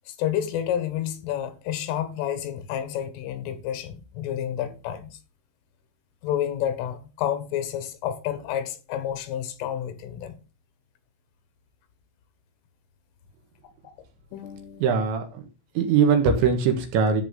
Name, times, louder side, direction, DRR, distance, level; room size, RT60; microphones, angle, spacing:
voice 1, 0.1-5.2 6.2-10.4 14.3-15.0, left 10 dB, 80° left, 3.8 m, -30 dB
voice 2, 14.8-15.2 15.8-17.2, right 6 dB, 70° right, 3.8 m, -21 dB
14.0 x 4.9 x 3.7 m
omnidirectional pair, 5.8 m